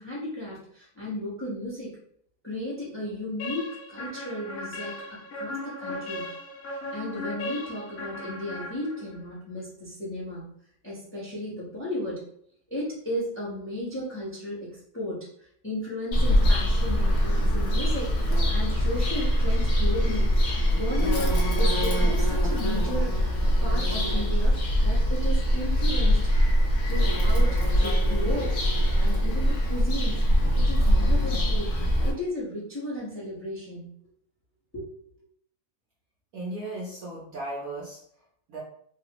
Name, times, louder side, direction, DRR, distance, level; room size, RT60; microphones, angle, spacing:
voice 1, 0.0-1.9 2.4-6.3 6.7-10.5 10.8-12.2 12.7-20.3 20.7-26.2 26.9-28.6 29.0-30.2 30.5-31.7 32.0-33.9 34.7-34.9, left 1 dB, 10° left, -7 dB, 0.7 m, -34 dB
sound 1, 3.4-9.3, left 1 dB, 60° left, 1.1 m, -37 dB
Bird vocalization bird call bird song, 16.1-32.1, equal, 85° left, 0.6 m, -23 dB
voice 2, 36.3-38.0 38.5-38.6, right 2 dB, 65° right, -4 dB, 0.9 m, -36 dB
3.2 x 2.3 x 2.9 m, 0.66 s
omnidirectional pair, 2.0 m